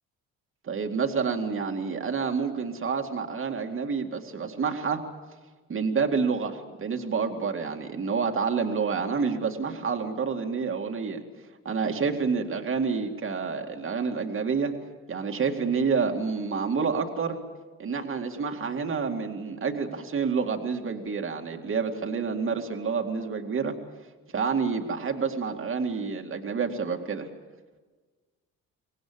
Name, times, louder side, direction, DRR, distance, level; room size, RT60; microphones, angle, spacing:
voice 1, 0.6-5.0 5.7-11.2 11.6-14.7 15.1-17.4 17.8-23.8 24.3-27.3, right 5 dB, 45° right, 3 dB, 2.3 m, -28 dB
25.0 x 18.5 x 8.7 m, 1.3 s
cardioid pair, 90°, 30 cm